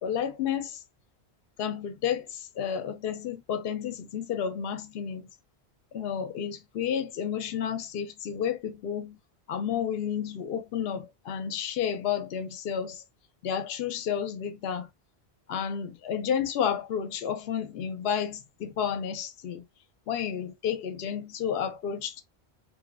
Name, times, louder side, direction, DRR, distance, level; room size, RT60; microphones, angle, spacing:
voice 1, 0.0-0.8 1.6-5.3 5.9-9.2 9.5-13.0 13.4-14.9 15.5-19.7 20.1-22.2, left 8 dB, 70° left, 0.8 m, -31 dB
2.9 x 2.0 x 2.3 m
omnidirectional pair, 1.1 m